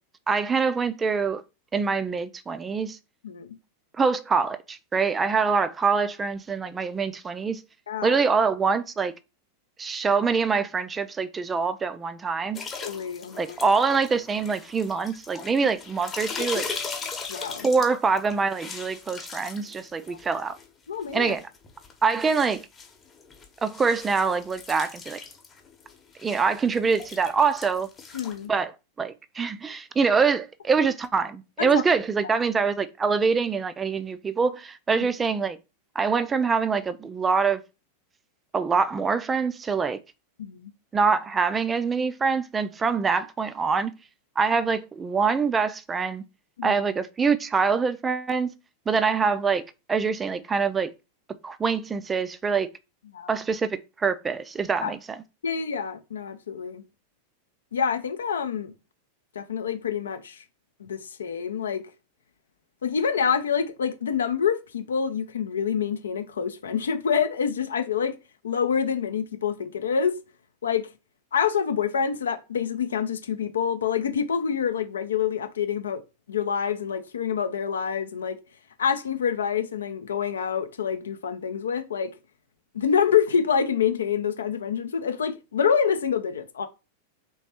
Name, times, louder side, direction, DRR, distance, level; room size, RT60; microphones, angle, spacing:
voice 1, 0.3-1.4 1.7-3.0 4.0-7.6 8.0-9.1 9.8-12.6 13.4-16.7 17.6-20.6 21.1-21.4 22.0-22.6 23.6-25.2 26.2-27.9 28.5-28.7 29.0-35.6 36.0-37.6 38.5-40.0 40.9-43.9 44.4-46.2 46.6-48.5 48.9-50.9 51.4-52.7 53.3-55.2, right 5 dB, 15° right, 0.4 m, -24 dB
voice 2, 3.2-3.5 7.9-8.2 12.8-13.6 17.3-17.7 20.1-20.2 20.9-21.3 28.1-28.5 31.6-31.8 35.0-35.1 40.4-40.7 46.6-46.8 53.1-53.3 54.8-54.9 55.4-56.8 57.7-58.7 59.3-60.4 60.8-61.9 62.8-68.2 68.4-70.2 70.6-70.9 71.3-76.0 76.3-78.4 78.8-82.1 82.7-86.7, left 7 dB, 65° left, 0.5 m, -27 dB
sound 1, 12.5-20.7 21.0-28.5, left 5 dB, 20° left, 0.9 m, -39 dB
3.4 x 3.1 x 4.2 m
figure-of-eight pair, 90°, 0 cm